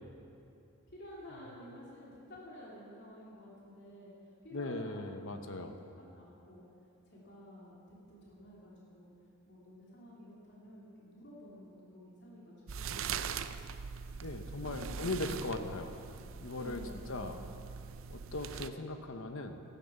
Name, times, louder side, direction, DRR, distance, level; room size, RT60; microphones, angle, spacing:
voice 1, 0.9-4.1 4.4-6.6 7.1-7.8 8.1-9.1 9.5-13.1 14.6-15.7 16.5-17.4, left 1 dB, 55° left, -6 dB, 2.9 m, -52 dB
voice 2, 4.5-5.7 14.2-15.9 16.4-16.8 17.1-17.4 18.1-19.6, left 2 dB, 70° left, 6 dB, 1.0 m, -39 dB
sound 1, 12.7-18.7, right 7 dB, 70° right, 0.5 m, -42 dB
13.5 x 12.0 x 7.1 m, 2.6 s
head